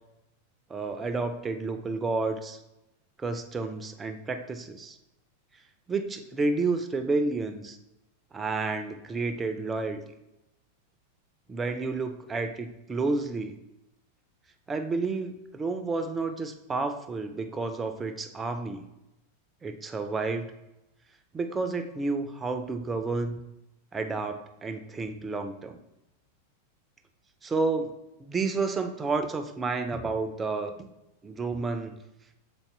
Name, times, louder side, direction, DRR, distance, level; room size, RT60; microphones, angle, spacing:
voice 1, 0.7-2.6 3.2-5.0 5.9-7.8 8.3-10.0 11.5-13.6 14.7-18.8 19.6-20.5 21.3-23.4 23.9-25.8 27.4-30.9 31.2-31.9, right 3 dB, 15° right, 7 dB, 0.6 m, -30 dB
6.9 x 4.1 x 3.4 m, 0.94 s
figure-of-eight pair, 90°, 0 cm